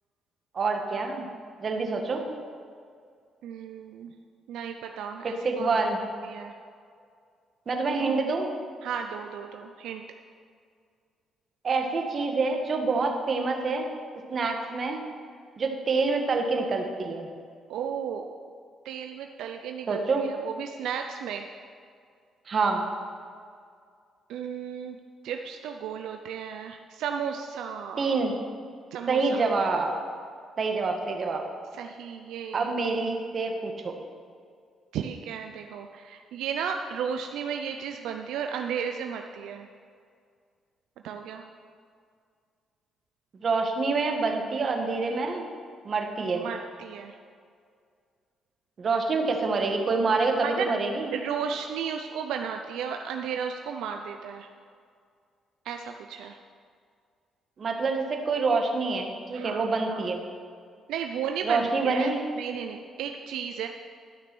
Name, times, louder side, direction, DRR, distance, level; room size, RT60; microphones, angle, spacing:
voice 1, 0.5-1.3 1.6-2.2 5.2-6.0 7.7-8.5 11.6-13.9 14.3-15.0 15.6-17.3 19.9-20.2 22.5-22.8 28.0-28.3 29.1-29.9 30.6-31.4 32.5-33.9 43.4-45.4 45.8-46.4 48.8-51.1 57.6-60.2 61.4-62.2, right 4 dB, 45° right, 3 dB, 1.5 m, -26 dB
voice 2, 3.4-4.1 4.5-5.9 6.2-6.5 8.0-8.2 8.8-10.0 17.7-18.3 18.8-21.5 24.3-25.0 25.2-28.1 28.9-29.4 31.7-32.8 34.9-39.7 41.0-41.4 46.3-47.2 50.1-50.7 51.1-54.5 55.6-56.4 59.3-60.0 60.9-62.1 62.4-63.7, right 7 dB, 85° right, 4 dB, 0.5 m, -34 dB
12.5 x 6.0 x 6.1 m, 2.2 s
cardioid pair, 90°, 0 cm